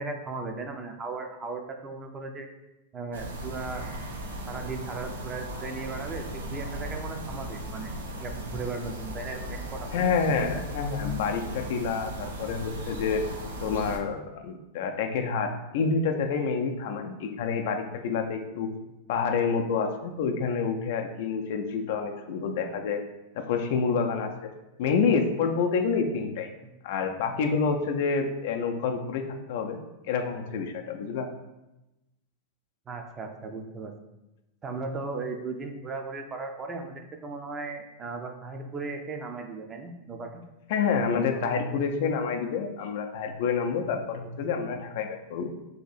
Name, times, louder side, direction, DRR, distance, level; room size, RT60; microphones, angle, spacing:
voice 1, 0.0-2.5 2.9-3.9 4.5-7.9 8.2-10.6 26.6-26.7 32.9-33.9 34.6-40.4, right 3 dB, 25° right, 4 dB, 0.5 m, -37 dB
sound 1, 3.1-14.0, right 1 dB, 90° right, 0.5 m, -37 dB
voice 2, 9.9-13.2 13.6-18.7 19.1-23.0 23.3-24.5 24.8-26.5 26.8-29.2 29.5-29.8 30.1-31.3 40.7-45.5, left 5 dB, 65° left, 5 dB, 0.4 m, -28 dB
2.8 x 2.6 x 4.0 m, 0.97 s
hypercardioid pair, 105°, 0 cm